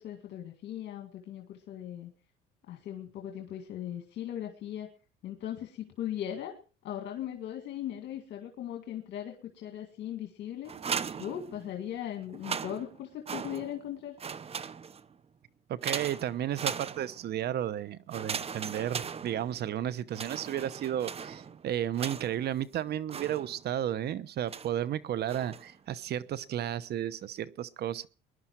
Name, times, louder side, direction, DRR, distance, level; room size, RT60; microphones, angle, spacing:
voice 1, 0.0-2.1 2.7-4.9 5.2-6.6 6.8-10.8 11.2-14.2, left 11 dB, 65° left, 1.9 m, -38 dB
sound 1, 10.7-11.9 12.3-13.9 14.2-15.2 15.8-17.4 18.1-19.7 20.1-22.5 23.1-23.8 24.5-24.9 25.3-25.8, right 6 dB, 30° right, 0.9 m, -38 dB
voice 2, 15.7-28.1, right 11 dB, 55° right, 1.0 m, -33 dB
20.5 x 11.0 x 4.5 m
cardioid pair, 100°, 20 cm